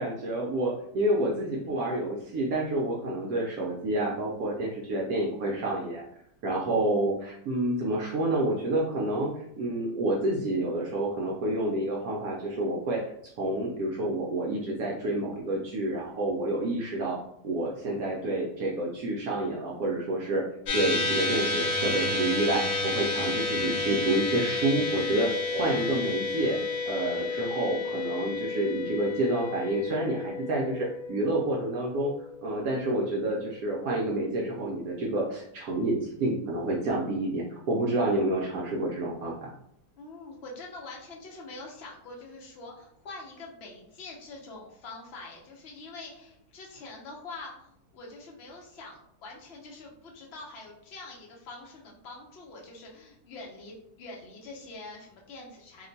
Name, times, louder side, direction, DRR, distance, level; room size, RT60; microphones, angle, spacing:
voice 1, 0.0-6.0 6.4-13.0 13.4-17.2 17.4-20.4 20.7-26.6 26.8-32.1 32.4-39.5, right 1 dB, 70° right, -2 dB, 0.9 m, -29 dB
sound 1, 20.7-33.2, left 3 dB, 70° left, 1.2 m, -31 dB
voice 2, 27.5-27.9 40.0-55.9, left 3 dB, 55° left, -1 dB, 0.8 m, -45 dB
2.9 x 2.1 x 3.9 m, 0.72 s
omnidirectional pair, 1.8 m